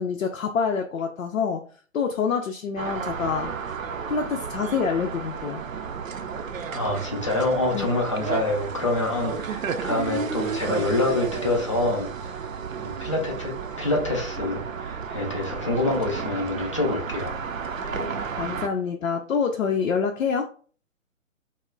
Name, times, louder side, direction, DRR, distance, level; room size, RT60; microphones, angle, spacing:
voice 1, 0.0-1.7 1.9-3.5 4.1-5.6 7.7-7.9 17.8-20.5, left 6 dB, 80° left, 3 dB, 0.5 m, -27 dB
sound 1, 2.8-18.7, right 6 dB, 85° right, 0.5 m, -32 dB
voice 2, 6.7-12.1 12.7-17.4, left 2 dB, 25° left, 0 dB, 0.4 m, -26 dB
2.1 x 2.0 x 3.7 m, 0.42 s
figure-of-eight pair, 140°, 39 cm